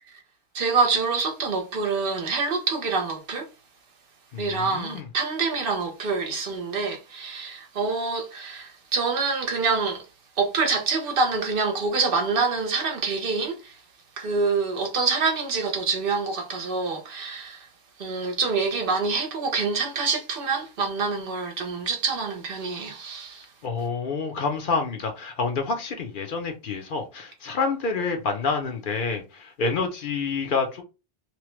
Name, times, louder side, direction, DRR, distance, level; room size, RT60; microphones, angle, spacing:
voice 1, 0.5-3.5 4.4-10.1 10.4-13.8 14.2-17.7 18.0-23.5, right 4 dB, 65° right, 0.8 m, -26 dB
voice 2, 4.3-5.1 23.6-30.8, left 4 dB, 60° left, 0.8 m, -28 dB
3.0 x 2.1 x 3.1 m
omnidirectional pair, 1.0 m